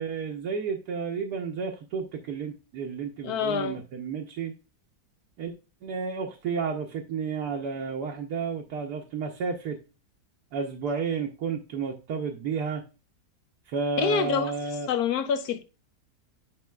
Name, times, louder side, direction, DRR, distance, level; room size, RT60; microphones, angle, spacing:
voice 1, 0.0-4.5 5.4-5.5 5.8-9.8 10.5-12.8 13.7-14.9, right 5 dB, 70° right, 1.2 m, -31 dB
voice 2, 3.2-3.8 14.0-14.5 14.9-15.6, left 6 dB, 70° left, 1.1 m, -26 dB
10.5 x 5.2 x 2.3 m
omnidirectional pair, 1.8 m